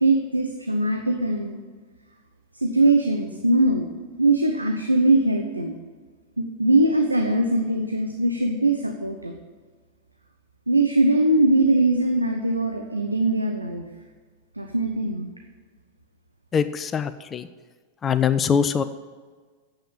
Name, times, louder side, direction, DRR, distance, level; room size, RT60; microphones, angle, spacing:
voice 1, 0.0-1.6 2.6-3.9 4.2-5.7 6.4-9.3 10.7-13.8 14.6-15.3, right 2 dB, 85° right, 4 dB, 0.7 m, -21 dB
voice 2, 16.5-17.5 18.0-18.8, left 7 dB, 25° left, 12 dB, 0.5 m, -22 dB
8.8 x 7.8 x 7.3 m, 1.5 s
figure-of-eight pair, 90°, 0 cm